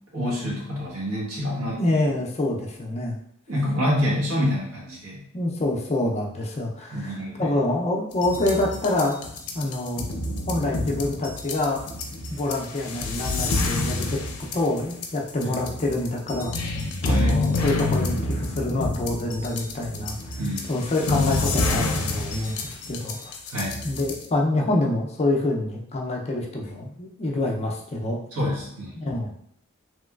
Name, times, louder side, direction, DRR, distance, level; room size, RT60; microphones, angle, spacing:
voice 1, 0.1-1.8 3.5-5.2 6.9-7.5 15.4-15.5 17.1-17.4 20.4-20.7 23.5-23.7 28.3-28.9, equal, 75° right, -5 dB, 1.2 m, -27 dB
voice 2, 1.8-3.2 5.3-9.2 9.5-10.0 10.5-11.8 12.3-16.5 17.0-20.2 20.7-23.3 23.8-28.2 29.0-29.3, left 2 dB, 30° left, 0 dB, 0.4 m, -26 dB
sound 1, 8.1-24.3, left 2 dB, 80° left, 0.5 m, -28 dB
3.0 x 2.9 x 2.3 m, 0.69 s
head